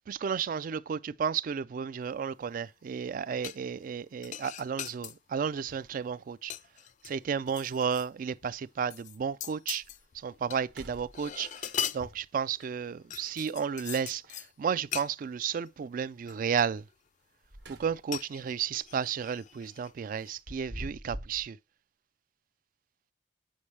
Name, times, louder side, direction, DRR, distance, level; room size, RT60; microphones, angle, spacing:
voice 1, 0.0-6.5 7.0-9.8 10.1-16.8 17.7-21.6, right 7 dB, 50° right, 0.3 m, -33 dB
sound 1, 3.4-3.9 4.2-5.2 5.7-6.0 6.2-8.1 8.4-8.5 8.9-10.6 10.9-12.7 13.1-14.5 14.9-15.1 15.7-15.8 16.3-16.9 18.1-19.9 20.2-20.4, left 9 dB, 45° left, 0.4 m, -40 dB
sound 2, 6.7-6.8 7.2-7.3 7.5-8.1 8.7-8.8 9.3-9.4 9.8-10.2 10.6-11.7 13.8-14.4 17.2-18.3 18.6-18.9 20.1-21.5, equal, 70° right, 1.2 m, -46 dB
8.6 x 5.2 x 3.2 m
head